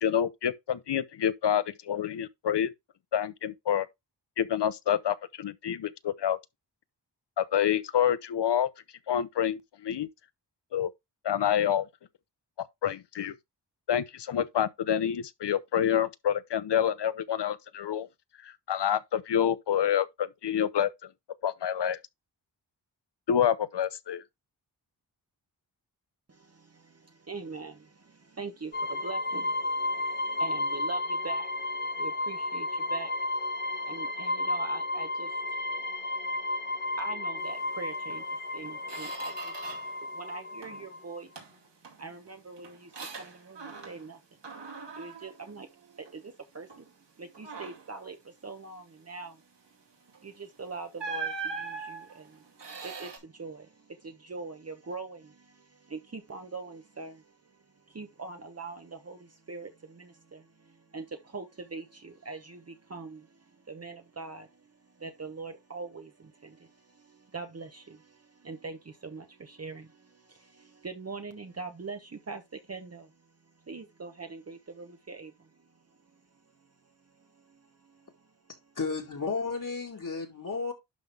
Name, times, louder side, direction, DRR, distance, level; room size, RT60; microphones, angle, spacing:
voice 1, 0.0-2.7 3.1-3.9 4.4-6.4 7.4-8.7 9.1-10.1 10.7-10.9 11.2-11.9 12.8-13.3 13.9-18.1 18.4-20.9 21.4-22.0 23.3-24.2, left 9 dB, 75° left, 0.8 m, -27 dB
voice 2, 26.3-31.6 32.0-33.1 33.9-36.0 36.3-39.5 40.0-41.3 42.0-44.2 45.0-49.7 50.0-73.3 73.7-75.7 77.1-78.3, right 4 dB, 35° right, 1.0 m, -43 dB
sound 1, 28.7-41.2, left 2 dB, 25° left, 0.8 m, -32 dB
Squeak, 38.1-38.2 38.6-40.0 40.3-40.9 41.4-44.2 44.4-46.3 46.7-46.9 47.3-48.0 50.1-50.3 51.0-53.2, right 4 dB, 80° right, 2.5 m, -41 dB
voice 3, 78.8-80.7, left 4 dB, 50° left, 2.0 m, -33 dB
11.5 x 3.8 x 3.4 m
wide cardioid pair, 115°, 42 cm